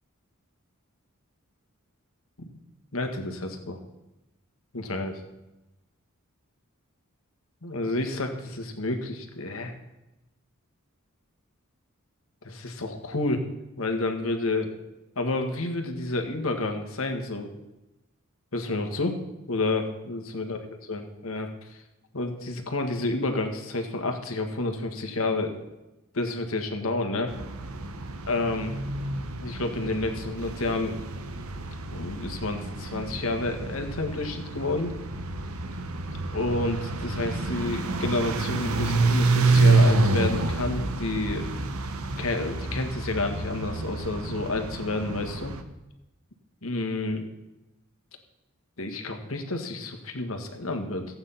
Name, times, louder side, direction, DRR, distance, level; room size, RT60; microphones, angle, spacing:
voice 1, 2.9-3.8 4.7-5.2 7.6-9.7 12.4-13.5 13.8-14.7 15.2-17.5 18.5-19.2 19.5-20.6 20.9-21.8 22.1-25.5 26.1-27.3 28.3-28.8 29.4-31.0 31.9-34.9 36.3-41.5 42.2-45.5 46.6-47.3 48.8-51.1, left 2 dB, 70° left, 5 dB, 1.8 m, -30 dB
sound 1, 27.3-45.6, right 3 dB, 85° right, 1.1 m, -28 dB
14.5 x 8.7 x 5.7 m, 0.97 s
head